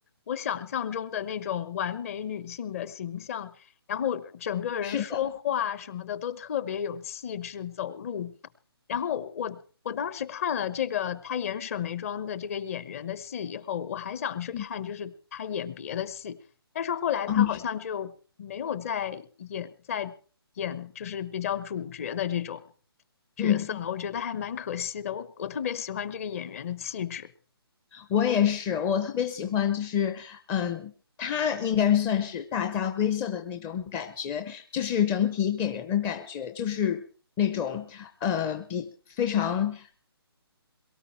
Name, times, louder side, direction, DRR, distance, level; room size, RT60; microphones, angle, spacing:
voice 1, 0.3-3.5 3.9-8.3 8.9-9.6 9.8-16.4 16.7-18.1 18.4-20.1 20.6-22.6 23.4-27.3, left 9 dB, 35° left, 15 dB, 1.0 m, -32 dB
voice 2, 4.8-5.2 14.5-14.6 17.3-17.6 23.4-23.8 27.9-30.9 31.2-37.0 37.4-40.1, left 9 dB, 15° left, 7 dB, 0.7 m, -27 dB
22.5 x 13.0 x 4.5 m, 0.43 s
figure-of-eight pair, 150°, 14 cm